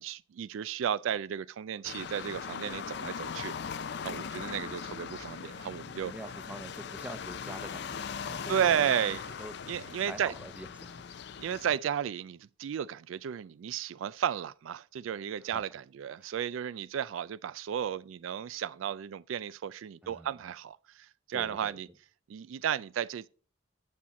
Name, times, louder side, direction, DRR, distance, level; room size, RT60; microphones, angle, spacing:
voice 1, 0.0-3.6 4.0-6.1 8.5-9.2 9.7-10.3 11.4-21.9 22.3-23.3, right 9 dB, 80° right, 0.3 m, -33 dB
sound 1, 1.8-11.8, left 6 dB, 60° left, 0.4 m, -40 dB
voice 2, 6.0-9.6 10.1-11.0 15.4-15.6 20.0-20.3 21.3-21.7, right 1 dB, 5° right, 0.7 m, -45 dB
8.5 x 7.4 x 4.1 m
head